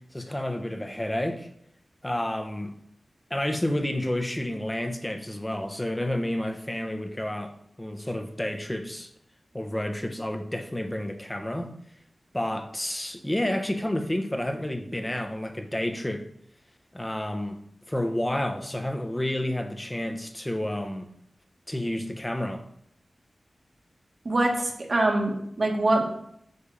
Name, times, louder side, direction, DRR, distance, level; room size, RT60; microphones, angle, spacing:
voice 1, 0.1-1.5 2.0-2.7 3.3-9.1 9.5-11.7 12.3-16.2 16.9-17.6 17.9-21.1 21.7-22.6, left 1 dB, 15° left, 5 dB, 1.2 m, -30 dB
voice 2, 24.3-26.0, right 2 dB, 55° right, 0 dB, 1.8 m, -24 dB
9.6 x 3.6 x 7.0 m, 0.72 s
wide cardioid pair, 80°, 0 cm